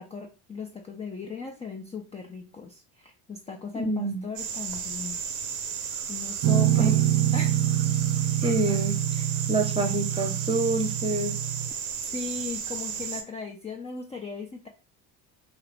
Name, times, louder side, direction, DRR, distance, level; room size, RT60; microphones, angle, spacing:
voice 1, 0.0-5.2 6.1-7.0 7.3-7.6 8.4-8.5 12.1-14.7, left 5 dB, 15° left, 2 dB, 0.4 m, -37 dB
voice 2, 3.7-4.2 6.7-6.9 8.4-11.3, right 2 dB, 15° right, 5 dB, 0.8 m, -27 dB
sound 1, 4.4-13.2, right 7 dB, 90° right, 0.8 m, -34 dB
Guitar, 6.4-11.7, right 12 dB, 45° right, 0.5 m, -25 dB
2.9 x 2.4 x 3.4 m, 0.32 s
supercardioid pair, 85°, 42 cm